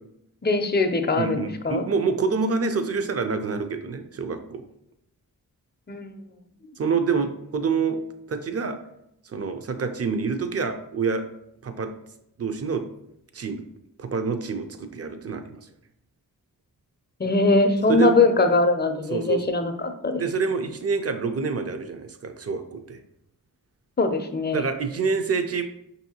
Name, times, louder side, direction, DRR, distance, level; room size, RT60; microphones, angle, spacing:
voice 1, 0.4-1.8 5.9-6.1 17.2-20.2 24.0-24.6, left 3 dB, 30° left, 6 dB, 0.5 m, -22 dB
voice 2, 1.2-4.7 6.8-8.0 8.3-8.8 9.2-11.3 11.6-11.9 12.4-12.8 13.3-13.6 14.0-15.6 17.9-18.2 19.1-19.4 20.1-23.0 24.5-25.6, right 5 dB, 40° right, 8 dB, 0.5 m, -27 dB
5.3 x 2.7 x 2.8 m, 0.78 s
wide cardioid pair, 65°, 37 cm